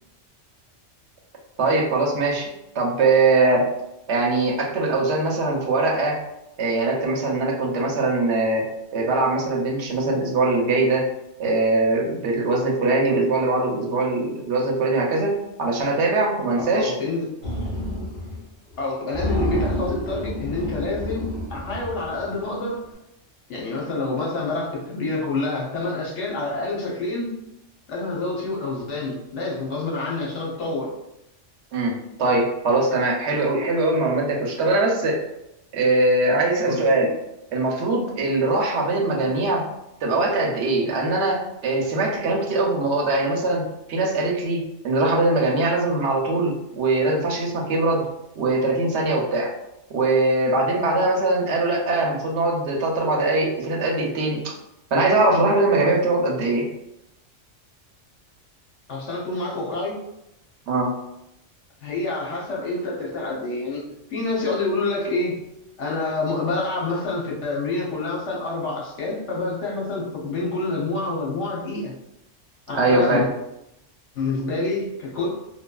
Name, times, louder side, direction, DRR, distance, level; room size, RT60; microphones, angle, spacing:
voice 1, 1.6-2.5 2.7-3.7 4.1-6.2 6.6-11.1 11.4-16.9 31.7-31.9 32.2-35.2 35.7-37.1 37.5-39.6 40.0-48.1 48.4-49.5 49.9-54.5 54.9-56.7 60.7-60.9 72.7-73.2, right 2 dB, 65° right, -1 dB, 0.9 m, -21 dB
voice 2, 16.7-17.3 18.8-22.8 23.5-27.4 27.9-30.9 36.6-36.8 58.9-60.0 61.8-63.8 64.1-65.4 65.8-71.9 72.7-73.3 74.1-75.3, left 3 dB, 70° left, -4 dB, 1.1 m, -27 dB
sound 1, 17.4-18.4 18.7-18.8 19.1-22.5, left 1 dB, 45° left, 1.5 m, -29 dB
3.2 x 2.3 x 2.2 m, 0.86 s
omnidirectional pair, 1.3 m